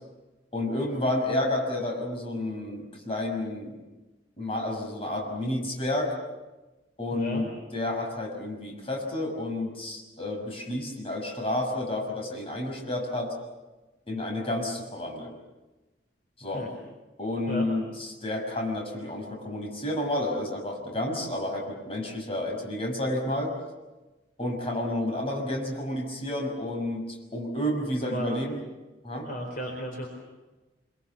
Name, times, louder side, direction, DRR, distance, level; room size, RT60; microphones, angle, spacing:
voice 1, 0.5-3.7 4.4-6.1 7.0-13.3 14.1-15.3 16.4-16.7 17.2-23.5 24.4-27.0 27.3-28.6 29.0-29.3, left 1 dB, 30° left, 1 dB, 6.3 m, -30 dB
voice 2, 7.1-7.4 16.5-16.7 17.5-17.7 28.0-28.3 29.2-30.1, equal, 50° left, 1 dB, 4.3 m, -34 dB
25.5 x 24.5 x 7.1 m, 1.1 s
head